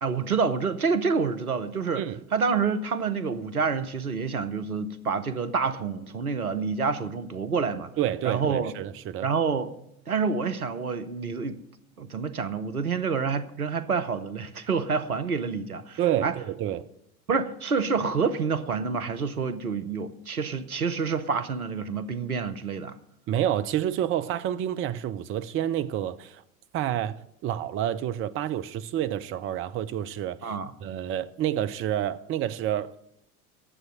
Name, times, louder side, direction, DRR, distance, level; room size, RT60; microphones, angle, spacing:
voice 1, 0.0-2.0 2.3-7.9 8.2-8.7 9.2-9.7 10.1-11.6 12.0-16.3 17.3-22.9 30.4-30.7, right 5 dB, 85° right, 0.8 m, -28 dB
voice 2, 8.0-9.3 16.0-16.9 23.3-26.4 26.7-27.2 27.4-30.5 30.8-33.0, right 11 dB, 30° right, 0.6 m, -29 dB
10.0 x 7.7 x 9.1 m
figure-of-eight pair, 70°, 43 cm